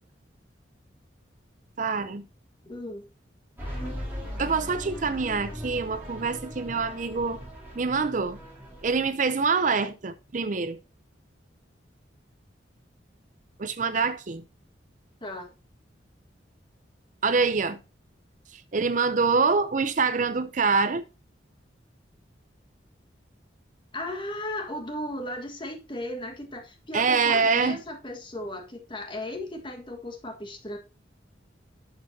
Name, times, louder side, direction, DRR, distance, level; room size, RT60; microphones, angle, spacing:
voice 1, 1.8-2.2 4.4-7.4 7.8-8.4 8.8-10.8 13.6-14.4 17.2-17.8 18.5-21.1 26.9-27.8, right 4 dB, 40° right, 0.5 m, -25 dB
voice 2, 2.6-3.1 15.2-15.5 23.9-30.8, left 1 dB, 25° left, 1.6 m, -36 dB
sound 1, 3.6-9.1, equal, 10° right, 4.2 m, -38 dB
11.0 x 6.3 x 2.7 m
head